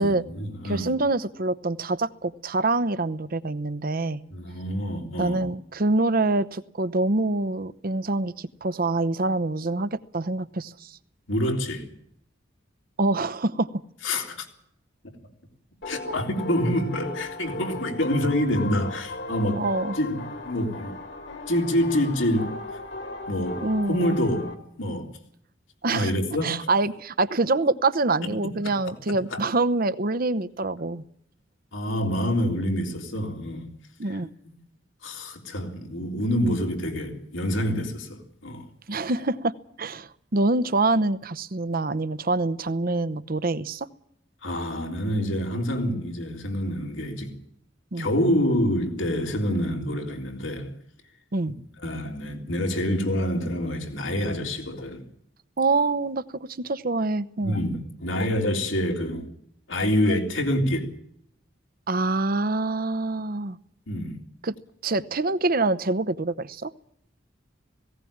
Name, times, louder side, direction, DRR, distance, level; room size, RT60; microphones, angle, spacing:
voice 1, 0.0-0.9 4.3-5.5 11.3-11.9 14.0-14.5 15.9-19.6 19.9-20.9 21.5-22.8 23.3-23.6 23.9-24.5 24.8-25.1 25.9-26.7 29.3-29.4 31.7-33.7 34.1-34.2 35.0-38.7 44.4-47.3 48.0-50.7 51.5-51.6 51.8-55.0 57.4-59.3 59.7-60.9 63.9-64.2, equal, 80° left, 3.5 m, -27 dB
voice 2, 0.6-4.2 5.2-11.0 13.0-13.7 16.1-16.2 19.6-19.9 23.6-24.2 25.8-26.1 26.4-31.0 34.0-34.3 38.9-39.5 39.8-43.9 47.9-48.1 51.3-51.5 55.6-57.6 61.9-63.6 64.4-64.5 64.8-66.7, right 2 dB, 50° right, 0.8 m, -25 dB
sound 1, 15.8-24.5, left 2 dB, 60° left, 3.1 m, -37 dB
18.5 x 17.5 x 8.7 m
head